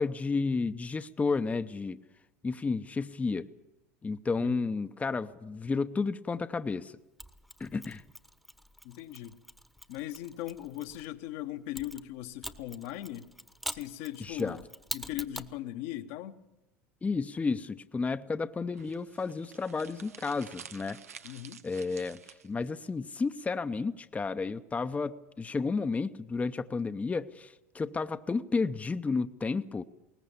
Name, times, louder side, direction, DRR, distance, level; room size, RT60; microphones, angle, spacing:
voice 1, 0.0-2.0 2.4-3.5 4.0-6.9 7.6-8.0 14.2-14.6 17.0-21.0 21.6-22.2 22.4-29.8, left 4 dB, 20° left, 0.8 m, -32 dB
Mechanisms, 7.2-11.1 11.8-15.6, equal, ahead, 1.2 m, -44 dB
voice 2, 8.8-9.4 9.9-13.3 13.6-14.6 14.9-16.4 21.2-21.6, left 13 dB, 65° left, 1.3 m, -39 dB
sound 1, 18.7-22.7, right 7 dB, 90° right, 0.8 m, -50 dB
21.5 x 19.0 x 7.1 m
hypercardioid pair, 80°, 8 cm